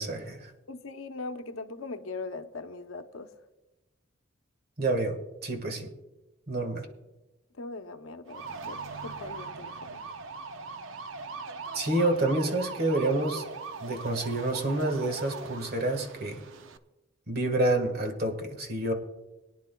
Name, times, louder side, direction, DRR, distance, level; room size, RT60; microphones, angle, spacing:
voice 1, 0.0-0.5 4.8-5.2 5.4-5.9 6.5-6.9 11.7-13.5 13.8-16.4 17.3-18.9, right 2 dB, 50° right, 5 dB, 1.5 m, -28 dB
voice 2, 0.7-3.3 7.5-10.0, left 3 dB, 85° left, 8 dB, 0.8 m, -40 dB
sound 1, 8.3-16.8, right 4 dB, 70° right, 0.6 m, -40 dB
22.5 x 10.0 x 2.3 m, 1.1 s
head